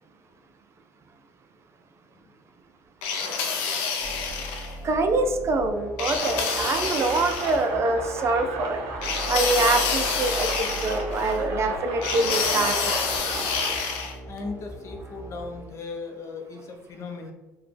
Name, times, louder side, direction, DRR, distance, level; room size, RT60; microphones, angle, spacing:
sound 1, 3.0-4.7 6.0-7.6 9.0-11.4 12.0-14.1, left 5 dB, 90° left, 0.5 m, -28 dB
sound 2, 4.0-15.6, right 2 dB, 10° right, 0.9 m, -40 dB
voice 1, 4.8-8.8 9.3-12.9, right 3 dB, 40° right, 6 dB, 0.4 m, -25 dB
sound 3, 6.2-13.8, right 3 dB, 75° right, 0.7 m, -35 dB
voice 2, 14.3-17.3, left 4 dB, 45° left, 3 dB, 0.6 m, -37 dB
3.9 x 2.2 x 3.3 m, 1.1 s
supercardioid pair, 95°, 7 cm